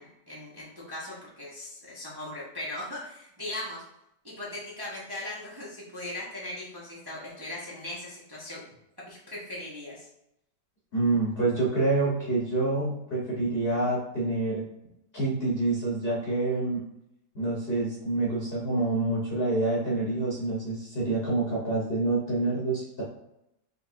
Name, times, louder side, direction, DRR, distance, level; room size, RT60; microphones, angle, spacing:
voice 1, 0.0-3.8 4.2-8.6 9.1-10.1, left 1 dB, 20° right, -6 dB, 0.7 m, -39 dB
voice 2, 10.9-14.6 15.1-16.8 17.3-23.0, right 2 dB, 40° left, -5 dB, 1.2 m, -27 dB
5.1 x 3.5 x 2.6 m, 0.83 s
omnidirectional pair, 1.9 m